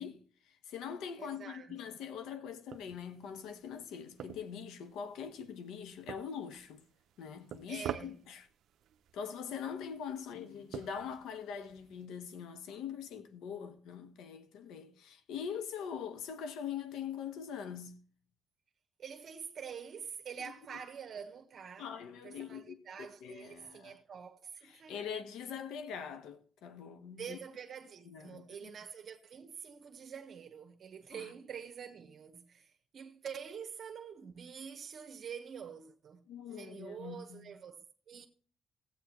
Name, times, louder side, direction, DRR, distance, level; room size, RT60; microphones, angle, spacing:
voice 1, 0.0-6.9 7.2-8.5 9.1-18.0 20.4-20.8 21.8-24.0 24.6-27.4 28.0-28.7 31.1-31.3 36.3-37.5, left 7 dB, 85° left, 1.0 m, -43 dB
voice 2, 1.2-1.8 7.7-8.2 19.0-22.0 22.2-25.0 27.2-38.3, right 7 dB, 55° right, 1.1 m, -46 dB
sound 1, 2.7-12.1, right 10 dB, 75° right, 0.5 m, -49 dB
14.5 x 8.7 x 3.0 m
cardioid pair, 90°, 0 cm